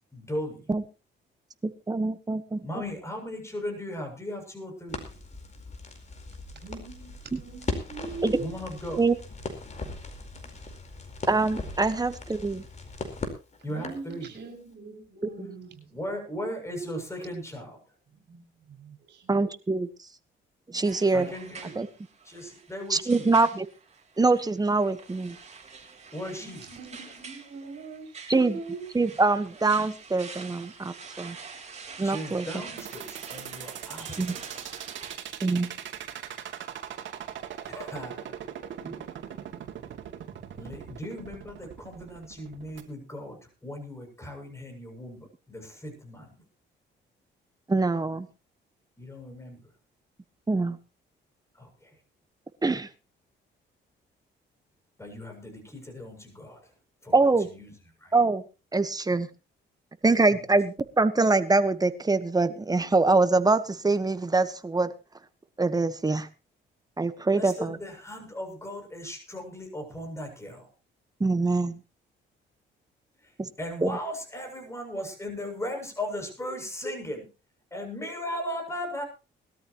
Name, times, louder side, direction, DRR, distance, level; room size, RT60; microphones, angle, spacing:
voice 1, 0.1-0.7 2.6-5.0 8.4-9.0 13.6-14.3 15.9-17.8 21.1-21.8 22.3-23.3 26.1-26.6 32.0-34.7 37.6-38.3 40.6-46.3 49.0-49.6 51.6-51.9 55.0-56.6 57.0-57.7 58.0-58.1 67.3-70.7 73.6-77.3 77.7-79.0, equal, 15° left, 3 dB, 7.4 m, -37 dB
voice 2, 1.6-2.7 7.3-7.4 8.2-8.4 9.0-9.2 11.3-12.6 15.4-15.5 19.3-19.9 20.7-21.3 21.7-21.9 22.9-23.7 24.2-25.4 28.3-28.6 28.9-31.4 32.0-32.5 34.2-34.4 35.4-35.7 38.8-39.1 47.7-48.3 50.5-50.8 52.6-52.9 57.1-57.5 58.1-58.4 58.7-59.3 60.0-64.9 65.6-66.3 67.0-67.8 71.2-71.8 73.4-73.5 73.8-74.0, right 3 dB, 20° right, 11 dB, 1.4 m, -24 dB
Crackle, 4.9-14.1, left 3 dB, 35° left, 4.6 m, -39 dB
voice 3, 6.5-8.5 10.3-10.5 13.7-16.0 18.1-19.3 26.3-28.0 28.3-28.8, right 4 dB, 55° right, 2 dB, 6.4 m, -42 dB
sound 1, 20.8-35.2, right 5 dB, 35° right, 4.4 m, -46 dB
sound 2, 32.8-42.8, right 10 dB, 70° right, 2.6 m, -40 dB
21.0 x 13.5 x 3.1 m, 0.32 s
cardioid pair, 90°, 20 cm